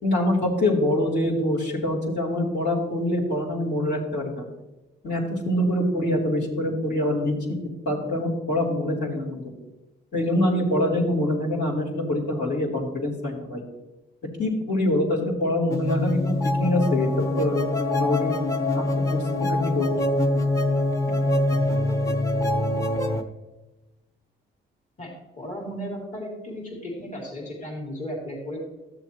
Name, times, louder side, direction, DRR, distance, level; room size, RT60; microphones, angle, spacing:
voice 1, 0.0-4.4 5.0-7.6 7.8-9.4 10.1-13.6 14.4-17.1 17.4-18.4 18.7-20.1, left 1 dB, 60° left, -6 dB, 3.4 m, -25 dB
sound 1, 15.7-23.2, left 1 dB, 15° left, 1.0 m, -24 dB
voice 2, 25.0-28.6, equal, 40° left, -3 dB, 3.2 m, -35 dB
13.5 x 7.0 x 3.1 m, 1.1 s
cardioid pair, 90°, 20 cm